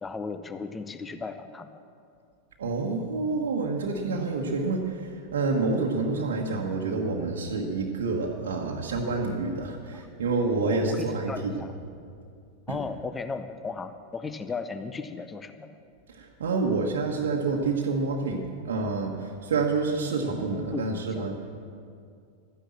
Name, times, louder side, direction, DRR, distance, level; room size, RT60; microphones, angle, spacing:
voice 1, 0.0-1.8 9.9-10.0 10.6-11.7 12.7-15.7 20.7-21.3, left 4 dB, 15° left, 10 dB, 0.6 m, -36 dB
voice 2, 2.6-11.6 12.7-12.8 16.1-21.4, right 3 dB, 60° right, -1 dB, 1.2 m, -28 dB
13.5 x 10.0 x 7.4 m, 2.4 s
figure-of-eight pair, 90°, 0 cm